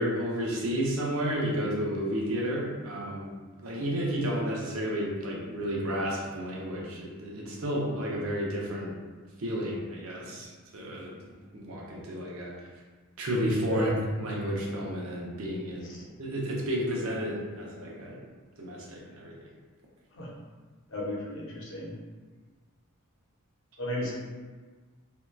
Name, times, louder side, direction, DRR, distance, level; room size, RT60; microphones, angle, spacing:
voice 1, 0.0-8.9 9.4-11.1 11.5-12.5 13.2-13.9 14.2-15.8 16.2-18.2 18.6-19.3, equal, 70° right, -3 dB, 0.6 m, -31 dB
voice 2, 20.9-21.9 23.8-24.1, left 1 dB, 60° left, -5 dB, 0.7 m, -34 dB
2.7 x 2.1 x 2.2 m, 1.4 s
head